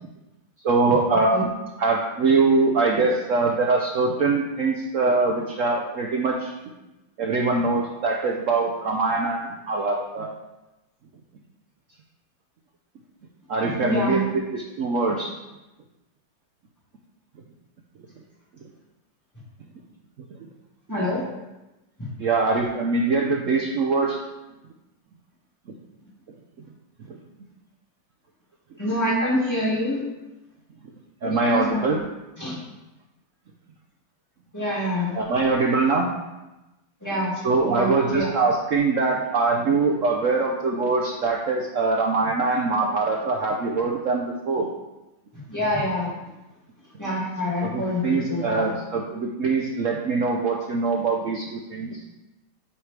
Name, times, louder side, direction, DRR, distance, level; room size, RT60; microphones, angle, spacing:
voice 1, 0.6-1.5 1.8-6.5 7.2-10.3 13.5-15.3 21.0-21.1 22.2-24.2 27.1-27.2 31.2-32.0 35.1-36.1 37.4-44.7 47.6-52.0, right 3 dB, 65° right, 0 dB, 0.7 m, -23 dB
voice 2, 13.8-14.2 20.9-21.2 28.8-30.0 31.2-31.9 32.4-32.6 34.5-35.2 37.0-37.3 37.6-38.3 45.5-46.1 47.0-48.7, left 1 dB, 10° left, -7 dB, 2.0 m, -26 dB
8.8 x 4.8 x 3.3 m, 1.0 s
omnidirectional pair, 2.0 m